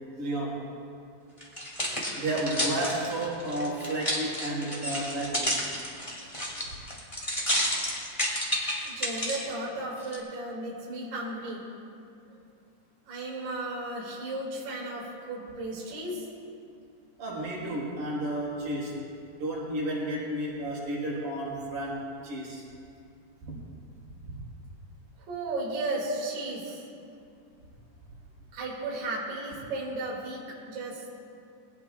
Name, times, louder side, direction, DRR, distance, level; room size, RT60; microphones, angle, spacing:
voice 1, 0.2-0.7 2.2-5.6 17.2-19.0 19.4-22.6 24.2-24.4, right 1 dB, 85° right, -6 dB, 6.5 m, -32 dB
sound 1, 1.4-9.4 10.0-10.2, equal, 10° left, 2.3 m, -31 dB
voice 2, 8.8-11.6 12.3-12.4 13.1-16.3 25.3-26.9 28.5-31.1, right 2 dB, 55° right, -5 dB, 3.8 m, -34 dB
23.0 x 17.5 x 2.5 m, 2.5 s
omnidirectional pair, 4.1 m